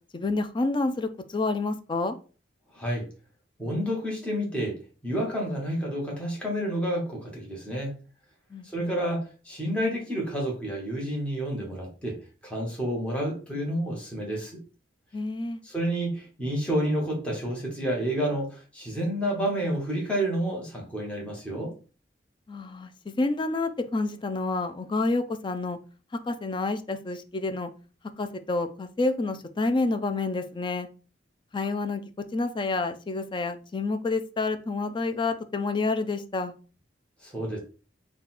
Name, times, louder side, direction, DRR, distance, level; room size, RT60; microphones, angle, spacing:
voice 1, 0.1-2.2 8.5-8.9 15.1-15.6 22.5-25.8 26.2-27.7 28.2-30.9 31.5-32.0 32.3-36.5, left 3 dB, 25° left, 9 dB, 0.4 m, -29 dB
voice 2, 2.7-3.0 3.6-4.8 5.0-7.9 8.6-12.2 12.4-14.6 15.6-21.7 37.2-37.6, right 1 dB, 5° left, -3 dB, 1.2 m, -29 dB
3.9 x 2.3 x 4.2 m, 0.36 s
head